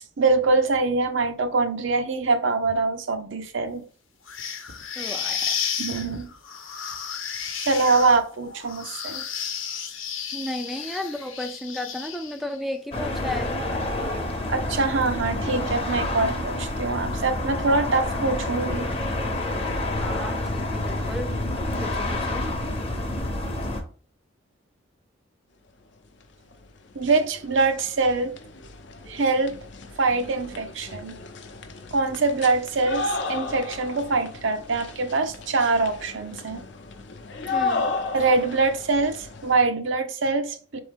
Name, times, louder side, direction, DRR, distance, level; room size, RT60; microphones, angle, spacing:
voice 1, 0.2-3.8 5.8-6.3 7.6-9.2 14.5-18.9 26.9-28.3 29.1-29.6 30.0-31.2 31.9-36.6 38.1-40.8, right 3 dB, 75° right, 0.6 m, -24 dB
sound 1, 4.3-12.6, left 7 dB, 90° left, 0.8 m, -32 dB
voice 2, 5.0-5.6 10.3-13.5 20.0-21.3 21.8-22.5 37.5-37.9, left 1 dB, ahead, 0.3 m, -33 dB
sound 2, 12.9-23.8, left 1 dB, 30° left, 0.8 m, -28 dB
sound 3, 26.5-26.6 26.9-39.6, left 3 dB, 60° left, 0.6 m, -34 dB
4.4 x 3.4 x 3.5 m
head